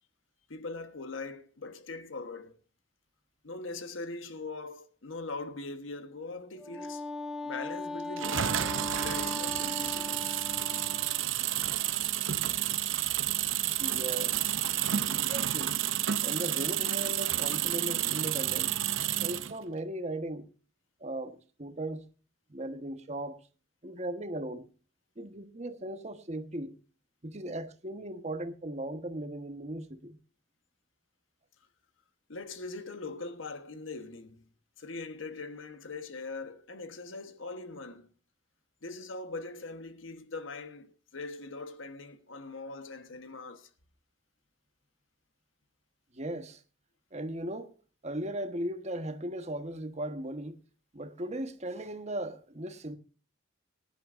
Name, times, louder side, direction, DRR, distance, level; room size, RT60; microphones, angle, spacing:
voice 1, 0.5-2.6 3.4-7.0 7.4-10.2 11.8-12.1 32.3-34.4 34.8-38.1 38.8-43.7, left 3 dB, 85° left, 1.3 m, -41 dB
Wind instrument woodwind instrument, 6.6-11.2, left 2 dB, ahead, 0.9 m, -39 dB
sound 1, 8.2-19.6, right 12 dB, 80° right, 0.7 m, -30 dB
voice 2, 13.8-14.4 15.1-15.7 16.2-18.7 19.2-20.5 21.0-22.0 22.5-23.4 23.8-24.7 25.2-26.7 27.2-30.2 46.1-46.6 47.1-47.7 48.0-50.6 50.9-52.9, right 1 dB, 35° right, 1.3 m, -37 dB
19.5 x 10.5 x 2.6 m
head